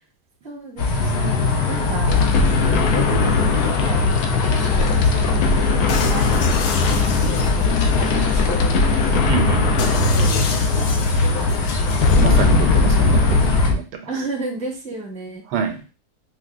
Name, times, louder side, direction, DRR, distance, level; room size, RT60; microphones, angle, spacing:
voice 1, 0.4-9.2 9.9-12.0 12.8-13.0 14.1-15.4, right 2 dB, 5° left, -3 dB, 0.6 m, -33 dB
sound 1, 0.8-13.7, left 3 dB, 85° left, 1.4 m, -22 dB
sound 2, 2.1-13.8, left 3 dB, 70° left, 1.0 m, -20 dB
voice 2, 9.3-9.7 12.2-14.0 15.5-15.8, right 6 dB, 85° right, 6 dB, 1.2 m, -26 dB
4.8 x 2.1 x 2.4 m, 0.32 s
omnidirectional pair, 1.7 m